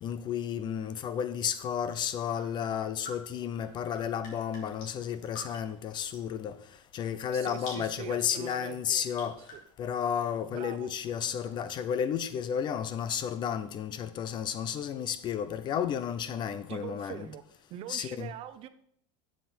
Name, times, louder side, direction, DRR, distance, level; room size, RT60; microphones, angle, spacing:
voice 1, 0.0-6.5 6.9-9.4 9.8-17.3 17.9-18.3, left 8 dB, 25° left, 0.5 m, -32 dB
sound 1, 1.9-13.2, left 2 dB, 45° left, 3.9 m, -52 dB
voice 2, 7.3-9.1 9.5-9.6 10.5-10.9 16.7-17.4 17.7-18.7, right 12 dB, 35° right, 0.6 m, -42 dB
13.0 x 7.4 x 4.3 m
supercardioid pair, 160°, 17 cm